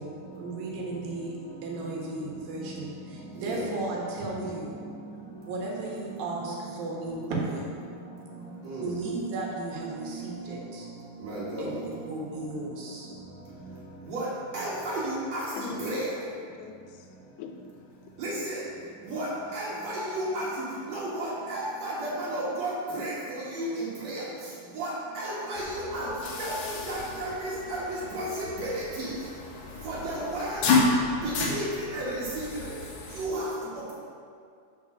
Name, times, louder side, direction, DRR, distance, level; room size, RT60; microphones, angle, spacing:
voice 1, 0.0-1.3 1.6-4.9 5.5-7.7 8.8-10.9 11.6-13.1 29.9-30.0, right 2 dB, 80° right, -3 dB, 3.0 m, -35 dB
voice 2, 8.4-8.7 13.5-14.1 15.5-15.8 16.4-18.2, left 7 dB, 85° left, 5 dB, 2.5 m, -46 dB
voice 3, 11.2-11.7 14.1-14.3 14.5-16.1 18.2-18.6 19.1-20.5 20.9-24.2 24.8-26.1 26.4-28.3 28.6-29.1 29.8-30.6 31.2-32.5 33.2-33.5, right 1 dB, 60° right, -6 dB, 2.1 m, -32 dB
sound 1, 25.5-33.3, left 3 dB, 70° left, 1.6 m, -31 dB
6.1 x 5.3 x 6.0 m, 2.2 s
omnidirectional pair, 4.2 m